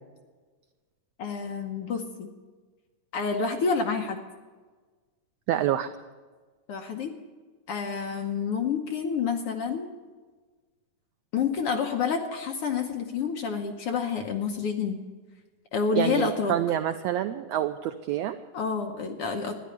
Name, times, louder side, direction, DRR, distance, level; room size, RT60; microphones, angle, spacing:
voice 1, 1.2-2.3 3.1-4.2 6.7-7.1 7.7-9.9 11.3-15.0 15.7-16.5 18.5-19.6, left 6 dB, 65° left, 4 dB, 1.6 m, -28 dB
voice 2, 5.5-5.9 16.0-18.4, right 11 dB, 90° right, 9 dB, 1.4 m, -27 dB
13.5 x 10.5 x 9.9 m, 1.4 s
omnidirectional pair, 3.6 m